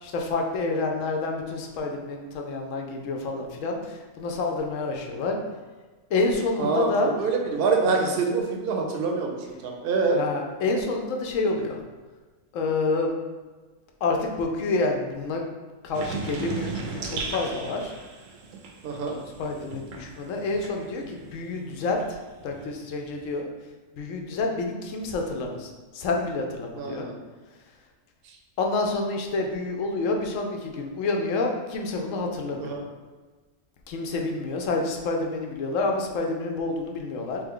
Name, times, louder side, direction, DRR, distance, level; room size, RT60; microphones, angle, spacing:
voice 1, 0.0-5.4 6.1-7.1 10.1-11.8 12.5-13.1 14.0-15.4 15.8-18.0 19.4-23.5 23.9-27.1 28.6-32.8 33.9-37.4, left 3 dB, 80° left, 2 dB, 1.0 m, -28 dB
voice 2, 6.6-10.2 18.8-19.1 26.8-27.2 28.2-28.4 32.6-32.8, right 4 dB, 55° right, 1 dB, 0.7 m, -26 dB
sound 1, 15.9-21.3 21.6-23.3, right 4 dB, 80° right, 1.0 m, -37 dB
3.4 x 3.0 x 3.6 m, 1.3 s
omnidirectional pair, 1.3 m